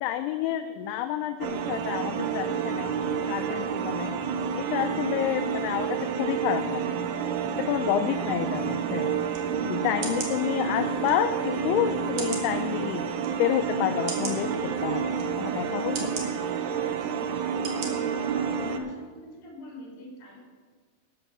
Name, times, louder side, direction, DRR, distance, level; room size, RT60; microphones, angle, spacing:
voice 1, 0.0-3.0 3.3-4.1 4.6-6.9 7.6-9.1 9.6-13.1 13.4-16.1, left 12 dB, 85° left, 8 dB, 2.8 m, -29 dB
sound 1, 1.4-18.8, right 6 dB, 80° right, 2.4 m, -29 dB
sound 2, 9.3-9.4 10.0-10.3 11.1-11.2 12.2-12.5 13.2-13.3 14.1-14.4 15.2-15.3 15.9-16.3 17.0-17.1 17.6-17.9 18.3-18.4, right 5 dB, 60° right, 1.9 m, -35 dB
voice 2, 18.5-20.4, left 1 dB, 50° left, -1 dB, 4.6 m, -45 dB
12.5 x 8.8 x 6.1 m, 1.5 s
omnidirectional pair, 5.5 m